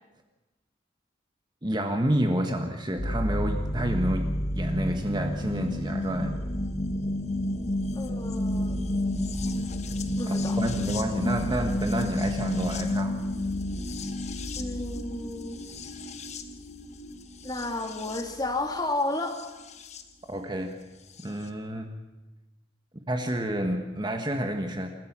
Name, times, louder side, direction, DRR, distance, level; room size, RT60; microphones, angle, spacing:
voice 1, 1.6-6.4 10.3-13.2 20.3-20.7 21.2-21.9 23.1-24.9, right 1 dB, 20° right, 4 dB, 1.5 m, -29 dB
sound 1, 3.0-20.0 21.2-21.3, left 1 dB, 35° left, 1.3 m, -31 dB
voice 2, 7.9-8.8 10.2-10.6 14.5-15.6 17.4-19.4, left 2 dB, 20° left, 4 dB, 2.4 m, -32 dB
28.0 x 14.5 x 7.4 m, 1.1 s
head